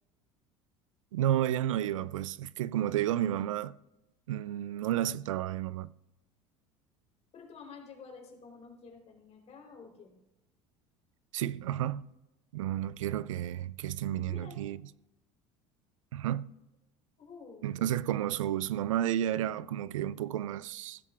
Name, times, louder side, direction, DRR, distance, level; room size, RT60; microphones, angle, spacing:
voice 1, 1.1-3.7 4.3-5.9 11.3-12.1 12.5-14.8 16.1-16.5 17.6-21.0, right 12 dB, 85° right, 0.4 m, -31 dB
voice 2, 7.3-10.2 14.2-14.7 17.2-17.7, left 5 dB, 40° left, 3.7 m, -50 dB
16.0 x 13.5 x 2.4 m
hypercardioid pair, 75°, 16 cm